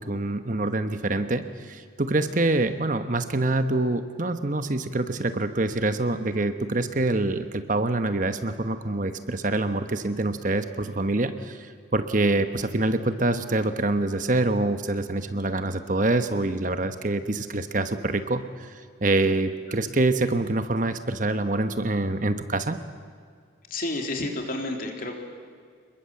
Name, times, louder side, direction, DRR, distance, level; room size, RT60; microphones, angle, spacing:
voice 1, 0.0-22.8, right 2 dB, 40° right, 9 dB, 1.1 m, -25 dB
voice 2, 23.7-25.2, left 2 dB, 45° left, 3 dB, 3.6 m, -30 dB
27.5 x 22.0 x 7.8 m, 2.1 s
head